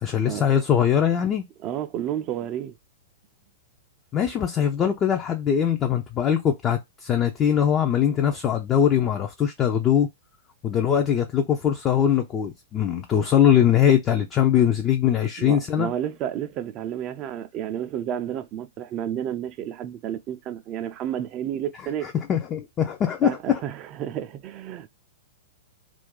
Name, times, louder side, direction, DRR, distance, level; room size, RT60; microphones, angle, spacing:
voice 1, 0.0-1.4 4.1-10.1 10.6-15.9 22.3-23.6, left 9 dB, 30° left, 0.5 m, -21 dB
voice 2, 1.6-2.8 15.4-22.1 23.2-25.0, right 10 dB, 35° right, 0.4 m, -31 dB
2.5 x 2.3 x 3.7 m
hypercardioid pair, 110°, 0 cm